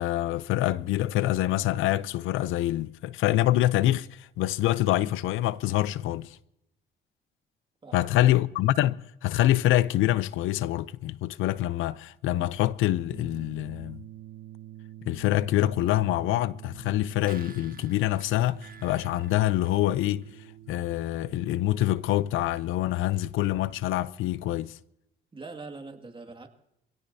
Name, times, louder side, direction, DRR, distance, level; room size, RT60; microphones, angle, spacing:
voice 1, 0.0-6.4 7.9-14.0 15.0-20.2 20.7-24.8, left 14 dB, 90° left, 0.5 m, -26 dB
voice 2, 7.8-8.4 25.3-26.5, right 3 dB, 25° right, 2.1 m, -43 dB
sound 1, 13.1-21.9, right 13 dB, 65° right, 0.9 m, -47 dB
sound 2, 16.9-20.4 20.8-20.9, right 6 dB, 45° right, 1.1 m, -52 dB
25.5 x 17.0 x 2.7 m
cardioid pair, 90°, 20 cm